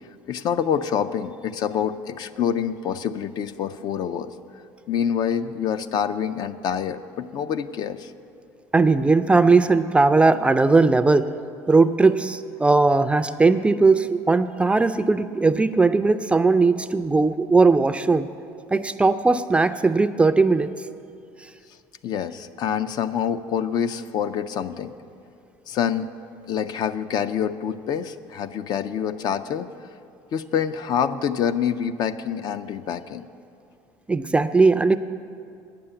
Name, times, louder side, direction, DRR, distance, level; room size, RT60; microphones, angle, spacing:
voice 1, 0.3-4.3 4.9-8.1 22.0-24.9 25.7-26.1 26.5-29.7 30.3-33.3, left 8 dB, 55° left, 11 dB, 0.4 m, -26 dB
voice 2, 8.7-11.3 11.7-18.3 18.7-20.7 34.1-35.0, right 3 dB, 15° right, 12 dB, 0.4 m, -18 dB
9.0 x 6.8 x 8.7 m, 2.5 s
supercardioid pair, 90°, 9 cm